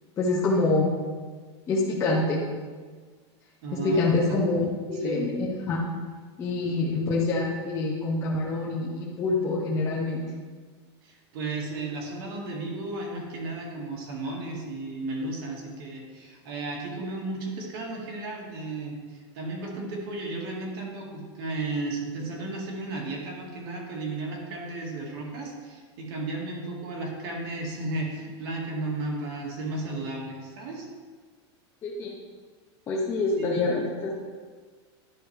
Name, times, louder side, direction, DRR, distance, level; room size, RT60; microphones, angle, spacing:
voice 1, 0.2-0.9 1.7-2.4 3.7-5.8 6.4-10.2 31.8-32.1 32.9-34.1, left 3 dB, 20° left, -5 dB, 0.8 m, -26 dB
voice 2, 3.6-4.4 5.0-5.3 6.7-6.8 11.0-30.9 33.4-33.5, right 2 dB, 55° right, -1 dB, 2.0 m, -34 dB
10.5 x 5.8 x 3.4 m, 1.5 s
supercardioid pair, 165°, 15 cm